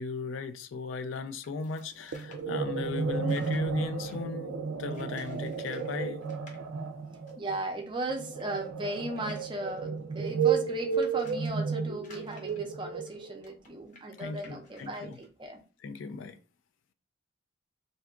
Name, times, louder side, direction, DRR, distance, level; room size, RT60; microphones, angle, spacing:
voice 1, 0.0-6.2 14.2-15.2 15.8-16.4, left 4 dB, 75° left, 0.3 m, -37 dB
sound 1, 1.4-4.3 4.9-5.9 6.2-6.6 7.3-7.4 7.6-7.7 8.2-11.5 12.0-15.3, left 2 dB, 40° left, 0.7 m, -56 dB
sound 2, 2.1-13.4, right 6 dB, 90° right, 0.4 m, -32 dB
voice 2, 7.4-15.6, right 2 dB, 25° right, 0.5 m, -36 dB
2.6 x 2.2 x 3.6 m
head